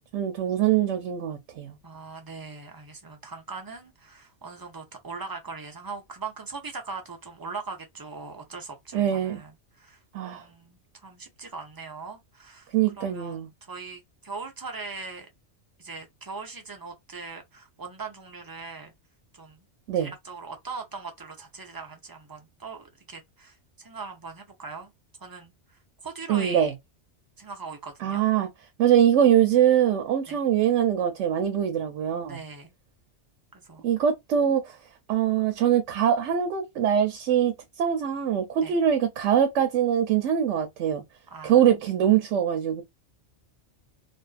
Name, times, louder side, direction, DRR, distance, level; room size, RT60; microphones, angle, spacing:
voice 1, 0.1-1.7 8.9-9.4 10.1-10.4 12.7-13.5 19.9-20.1 26.3-26.7 28.0-28.5 28.8-32.4 33.8-34.8 35.1-41.0 41.4-42.8, right 9 dB, 85° right, 0.9 m, -23 dB
voice 2, 1.8-9.5 9.8-12.7 13.0-15.3 15.8-18.9 19.3-19.6 20.0-24.9 25.2-26.7 27.4-28.3 30.3-30.4 32.3-32.7 33.5-33.9 38.6-38.8 41.3-41.6, right 4 dB, 35° right, 0.3 m, -40 dB
2.6 x 2.4 x 2.3 m
omnidirectional pair, 1.2 m